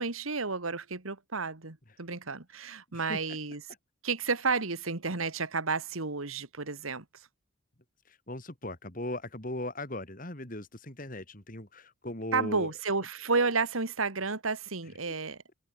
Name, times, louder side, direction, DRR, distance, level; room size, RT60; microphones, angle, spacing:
voice 1, 0.0-3.6 4.0-7.0 12.3-15.4, right 4 dB, 90° right, 2.1 m, -31 dB
voice 2, 2.9-3.4 8.0-12.7, left 1 dB, 40° left, 3.2 m, -38 dB
open air
head